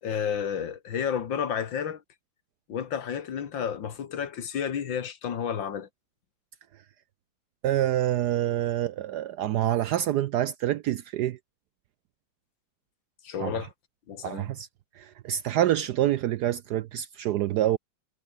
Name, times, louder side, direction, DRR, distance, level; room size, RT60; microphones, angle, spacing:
voice 1, 0.0-2.0 2.7-5.9 13.2-13.7 14.1-14.5, left 8 dB, 70° left, 2.3 m, -31 dB
voice 2, 7.6-11.4 13.4-13.6 14.2-14.7 15.0-17.8, right 12 dB, 75° right, 1.0 m, -26 dB
omnidirectional pair, 2.2 m